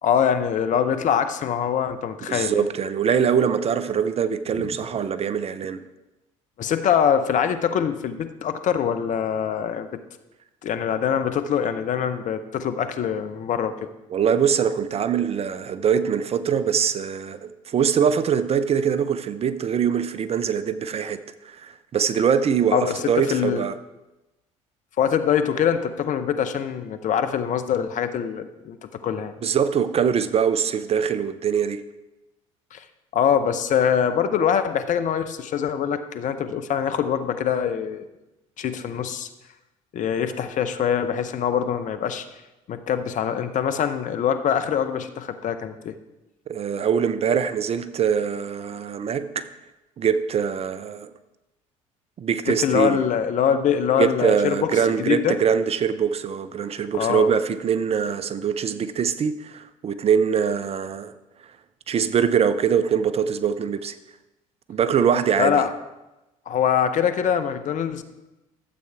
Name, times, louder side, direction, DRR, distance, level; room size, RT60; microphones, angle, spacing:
voice 1, 0.0-2.7 6.6-9.9 10.6-13.9 22.7-23.6 25.0-28.8 29.0-29.3 32.7-32.8 33.1-38.0 38.6-39.3 39.9-42.2 42.7-45.9 52.5-54.7 55.0-55.4 56.9-57.3 65.4-65.7 66.5-68.0, left 8 dB, 45° left, 10 dB, 0.8 m, -23 dB
voice 2, 2.3-5.9 14.1-21.2 21.4-23.7 29.4-31.8 46.5-49.5 50.0-51.1 52.2-53.0 54.0-61.1 61.9-63.9 64.7-65.6, right 7 dB, 35° right, 13 dB, 0.6 m, -23 dB
12.5 x 7.9 x 3.5 m, 1.0 s
hypercardioid pair, 60°, 17 cm